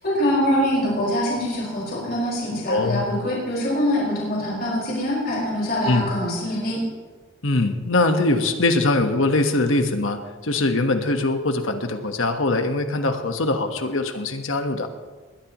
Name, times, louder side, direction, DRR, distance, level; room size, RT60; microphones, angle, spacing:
voice 1, 0.0-6.8, equal, 45° left, -5 dB, 5.1 m, -24 dB
voice 2, 2.7-3.0 5.8-6.0 7.4-14.9, left 2 dB, 75° left, 6 dB, 1.4 m, -22 dB
21.0 x 17.0 x 3.1 m, 1.4 s
head